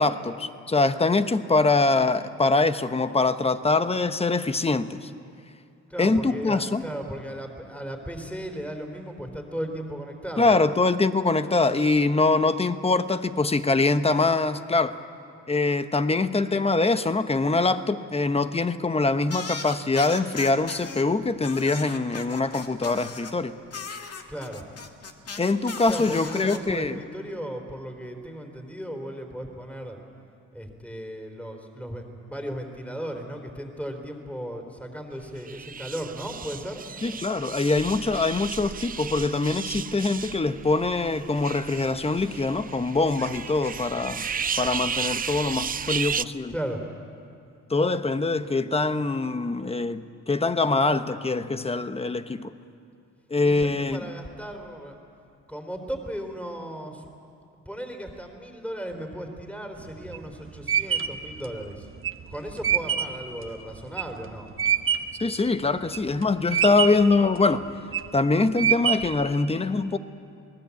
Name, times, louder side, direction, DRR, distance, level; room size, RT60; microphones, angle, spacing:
voice 1, 0.0-5.1 6.0-6.8 10.4-15.0 15.5-23.6 25.4-26.9 37.0-44.3 44.6-46.5 47.7-52.5 53.3-54.0 65.2-67.6 68.1-70.0, left 3 dB, 20° left, 10 dB, 1.1 m, -23 dB
voice 2, 5.9-10.5 24.3-24.6 25.9-30.0 30.5-36.8 46.5-46.8 53.4-55.0 55.5-57.0 57.7-61.9 62.3-64.5, equal, 5° left, 4 dB, 3.7 m, -36 dB
sound 1, 19.3-21.0 21.4-23.3 23.7-26.6, left 5 dB, 55° left, 2.3 m, -37 dB
sound 2, 35.4-46.2, right 7 dB, 30° right, 0.5 m, -34 dB
sound 3, 59.8-65.2 65.7-66.2 66.5-67.2 67.7-68.2 68.6-69.3, right 8 dB, 45° right, 1.2 m, -25 dB
28.0 x 19.5 x 8.4 m, 2.5 s
cardioid pair, 90°, 30 cm